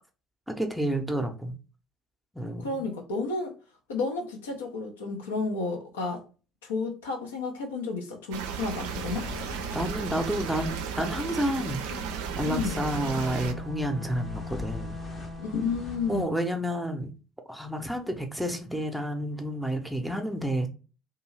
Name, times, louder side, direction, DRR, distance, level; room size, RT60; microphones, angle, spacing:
voice 1, 0.5-1.6 2.3-2.8 9.7-12.0 12.4-14.9 16.1-17.1 17.5-20.7, right 1 dB, ahead, 0.6 m, -30 dB
voice 2, 2.6-3.5 3.9-6.2 6.6-9.3 12.4-12.8 15.4-16.3, left 4 dB, 80° left, 0.5 m, -31 dB
sound 1, 8.3-13.5, right 6 dB, 75° right, 0.4 m, -35 dB
sound 2, 8.8-16.2, left 2 dB, 35° left, 0.6 m, -42 dB
Bowed string instrument, 12.3-16.6, left 2 dB, 60° left, 1.0 m, -41 dB
2.6 x 2.3 x 3.1 m
figure-of-eight pair, 55°, 0 cm